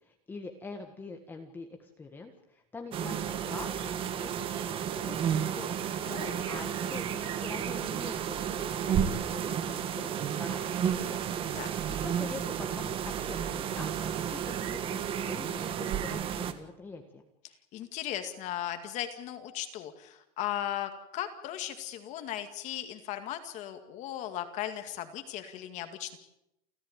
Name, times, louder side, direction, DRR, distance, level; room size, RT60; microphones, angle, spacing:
voice 1, 0.0-4.5 4.9-8.5 8.9-11.3 11.5-17.2, left 3 dB, 10° left, 4 dB, 1.6 m, -45 dB
sound 1, 2.9-16.5, right 8 dB, 30° right, 1.5 m, -32 dB
voice 2, 6.0-6.5 11.5-11.7 17.7-26.2, left 12 dB, 40° left, 7 dB, 2.2 m, -37 dB
29.5 x 14.5 x 8.9 m, 0.84 s
cardioid pair, 175°, 19 cm